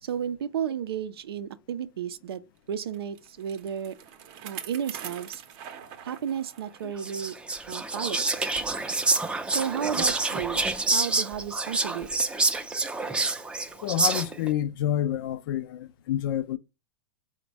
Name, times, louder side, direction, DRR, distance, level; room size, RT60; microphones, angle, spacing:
voice 1, 0.0-2.4 2.7-4.0 4.4-5.4 6.0-7.3 7.7-8.5 9.5-12.1, right 8 dB, 90° right, 0.4 m, -33 dB
Bicycle, 2.9-6.9 7.3-7.4 8.2-8.3, right 9 dB, 45° right, 0.6 m, -43 dB
Whispering, 7.0-14.5, right 3 dB, 10° right, 0.4 m, -27 dB
voice 2, 13.8-16.6, left 12 dB, 65° left, 0.5 m, -28 dB
4.0 x 2.1 x 4.6 m
hypercardioid pair, 125°, 12 cm